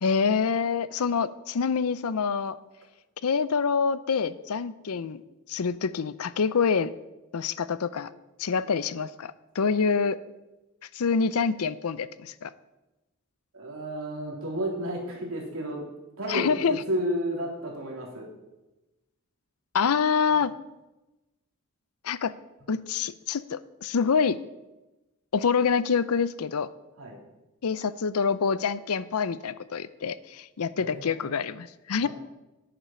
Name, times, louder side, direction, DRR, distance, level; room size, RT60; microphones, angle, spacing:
voice 1, 0.0-2.6 3.2-5.2 5.5-6.9 7.3-8.1 8.4-10.2 10.9-12.5 16.3-16.8 19.7-20.5 22.0-22.3 22.7-24.4 25.3-26.7 27.6-32.1, left 5 dB, 90° left, 16 dB, 0.5 m, -26 dB
voice 2, 13.5-15.8 16.2-18.3 20.3-20.4 27.0-27.2 30.8-31.3 32.0-32.1, equal, 70° right, -2 dB, 3.3 m, -32 dB
10.0 x 8.9 x 5.6 m, 1.0 s
head